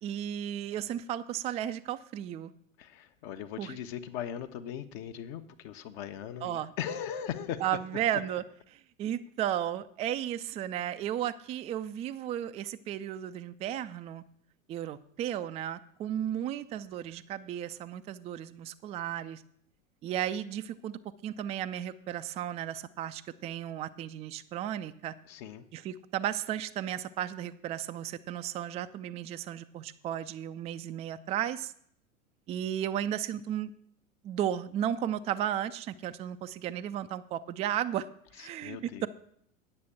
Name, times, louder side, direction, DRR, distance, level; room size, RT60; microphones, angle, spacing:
voice 1, 0.0-2.5 3.6-3.8 6.4-6.7 7.6-8.4 8.7-14.2 14.7-19.4 20.0-25.1 25.7-31.7 32.5-33.7 34.2-38.1 38.4-39.1, right 11 dB, 15° right, 11 dB, 0.4 m, -34 dB
voice 2, 2.8-7.6 25.3-25.6 38.4-39.1, left 9 dB, 50° left, 7 dB, 1.1 m, -39 dB
9.7 x 6.7 x 8.5 m, 0.66 s
figure-of-eight pair, 95°, 41 cm